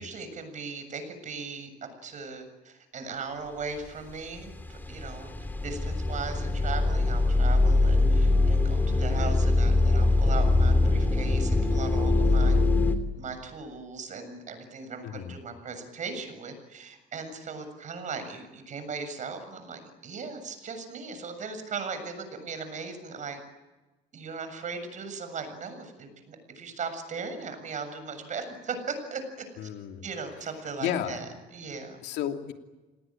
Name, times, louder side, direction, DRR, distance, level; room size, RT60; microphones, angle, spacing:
voice 1, 0.0-5.3 5.6-12.6 13.1-23.4 24.1-29.7 30.0-32.0, right 4 dB, 45° right, 9 dB, 7.3 m, -38 dB
sound 1, 3.9-4.1 4.4-13.0, left 2 dB, 10° left, 3.1 m, -23 dB
voice 2, 15.0-15.3 29.6-30.1 30.8-31.2 32.0-32.5, left 10 dB, 85° left, 4 dB, 2.8 m, -33 dB
28.0 x 20.0 x 9.0 m, 1.1 s
cardioid pair, 110°, 17 cm